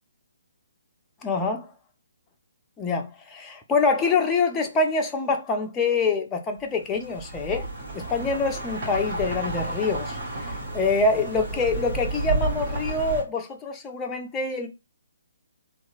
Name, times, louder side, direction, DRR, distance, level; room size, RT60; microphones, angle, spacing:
voice 1, 1.2-1.7 2.8-7.7 7.9-14.7, left 3 dB, 15° left, 0.5 m, -25 dB
sound 1, 6.9-13.2, right 2 dB, 40° right, 1.2 m, -31 dB
2.8 x 2.3 x 2.5 m
figure-of-eight pair, 135°, 0 cm